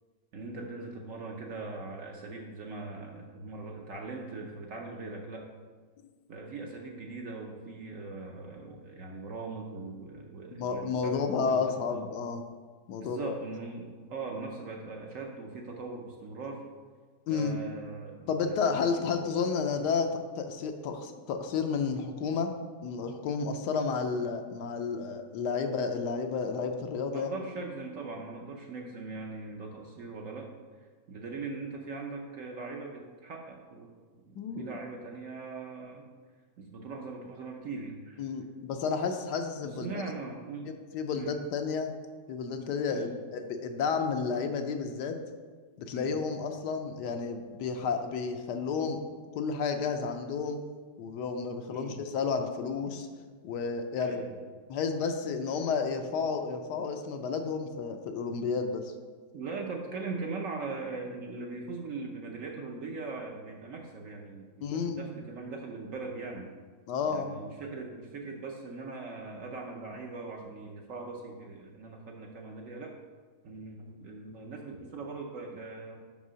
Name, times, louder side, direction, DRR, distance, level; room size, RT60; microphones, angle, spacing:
voice 1, 0.3-5.5 6.3-12.1 13.0-16.6 17.3-19.0 27.1-30.5 31.1-34.0 34.2-36.1 36.6-38.2 39.8-40.7 41.1-41.3 42.9-43.1 45.9-46.1 51.7-52.0 54.0-54.3 59.3-66.5 67.0-72.9 73.4-76.0, right 3 dB, 60° right, 1 dB, 0.9 m, -40 dB
voice 2, 10.5-12.4 12.9-13.3 17.3-17.6 18.3-22.5 22.8-27.3 34.4-34.7 38.2-40.0 40.7-41.9 42.3-45.2 45.8-49.0 49.3-50.6 51.0-53.1 53.4-54.2 54.7-58.8 64.6-65.2 66.9-67.4, left 5 dB, 75° left, 6 dB, 1.2 m, -31 dB
5.5 x 5.3 x 6.1 m, 1.5 s
omnidirectional pair, 1.9 m